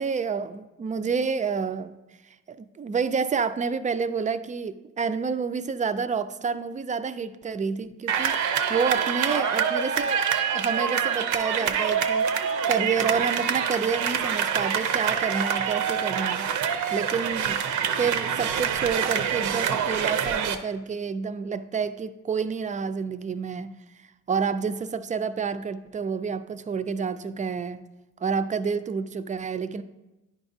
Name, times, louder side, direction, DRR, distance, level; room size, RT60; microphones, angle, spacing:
voice 1, 0.0-2.0 2.5-10.2 10.5-12.3 12.7-16.5 16.9-17.6 18.0-23.7 24.3-27.8 28.2-29.8, right 5 dB, 25° right, 0.3 m, -29 dB
sound 1, 8.1-20.6, right 7 dB, 80° right, 0.6 m, -26 dB
10.0 x 4.9 x 2.6 m
cardioid pair, 90°, 30 cm